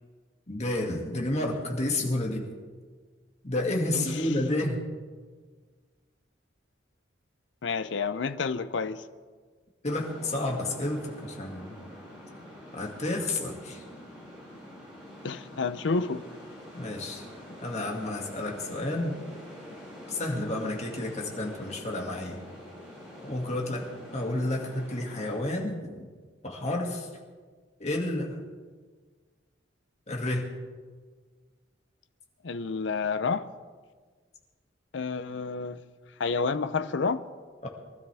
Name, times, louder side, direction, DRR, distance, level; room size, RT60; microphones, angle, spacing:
voice 1, 0.5-2.4 3.4-4.8 9.8-11.7 12.7-13.8 16.7-17.2 17.6-19.1 20.1-22.4 23.2-23.8 24.1-26.1 26.4-27.1 27.8-28.4 30.1-30.5 37.6-37.7, left 1 dB, 35° left, 2.2 m, -30 dB
voice 2, 3.9-4.3 7.6-9.0 15.2-16.2 32.4-33.5 34.9-35.8 36.2-37.2, left 4 dB, 75° left, 0.6 m, -29 dB
sound 1, 9.9-25.4, equal, 5° right, 5.6 m, -46 dB
23.5 x 13.0 x 3.5 m
head